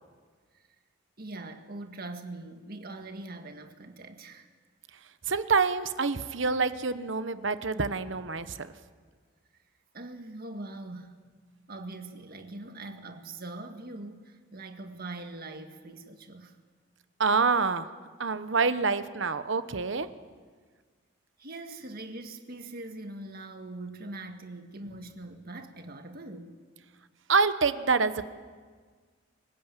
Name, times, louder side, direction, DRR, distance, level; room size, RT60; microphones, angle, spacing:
voice 1, 1.2-4.5 9.9-11.1 11.7-16.6 21.4-26.6, right 2 dB, 50° right, 1.8 m, -42 dB
voice 2, 5.3-8.7 17.2-17.9 18.2-20.1 27.3-28.2, right 4 dB, 65° right, 1.0 m, -26 dB
25.0 x 15.5 x 9.1 m
head